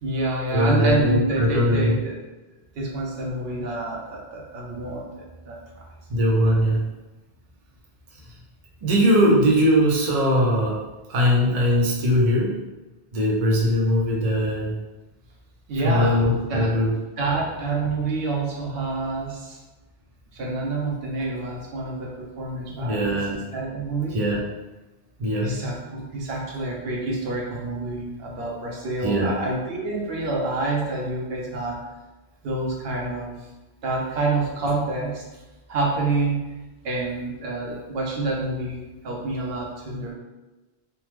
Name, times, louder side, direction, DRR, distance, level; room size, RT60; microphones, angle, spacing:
voice 1, 0.0-2.2 2.7-5.8 15.7-16.2 16.5-16.7 17.2-19.6 20.3-24.2 25.4-31.8 32.4-33.3 33.8-35.2 35.7-36.6 36.8-40.1, right 2 dB, 75° right, -2 dB, 0.8 m, -27 dB
voice 2, 0.5-2.0 6.1-6.8 8.8-10.8 11.1-12.6 13.1-14.7 15.8-16.9 22.7-23.4 24.1-24.4 25.2-25.5 29.0-29.3, equal, 45° right, -3 dB, 0.6 m, -20 dB
2.9 x 2.1 x 3.3 m, 1.1 s
omnidirectional pair, 1.0 m